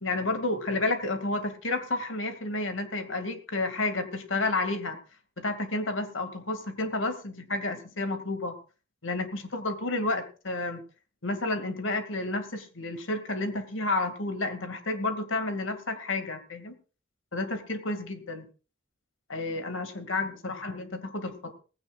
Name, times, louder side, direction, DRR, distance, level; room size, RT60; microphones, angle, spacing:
voice 1, 0.0-5.0 5.4-8.6 9.0-10.8 11.2-16.8 17.3-18.5 19.3-21.5, left 2 dB, 90° left, 8 dB, 2.3 m, -31 dB
19.0 x 16.0 x 2.5 m, 0.35 s
head